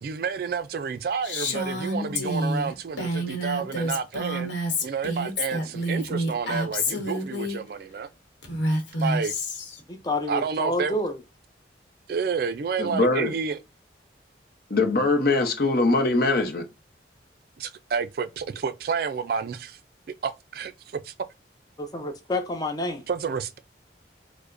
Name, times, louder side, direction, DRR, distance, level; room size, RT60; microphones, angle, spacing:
voice 1, 0.0-4.5 4.8-8.1 9.0-9.4 10.3-11.0 12.1-13.6 17.6-19.8 20.1-21.1 23.1-23.6, right 5 dB, 55° right, 0.3 m, -30 dB
Female speech woman speaking, 1.2-7.6 8.4-9.8, equal, 90° left, 1.0 m, -28 dB
voice 2, 9.9-11.2 21.8-23.1, left 1 dB, 20° left, 0.6 m, -29 dB
voice 3, 12.8-13.3 14.7-16.6, left 2 dB, 55° left, 0.7 m, -22 dB
4.7 x 2.1 x 2.5 m
head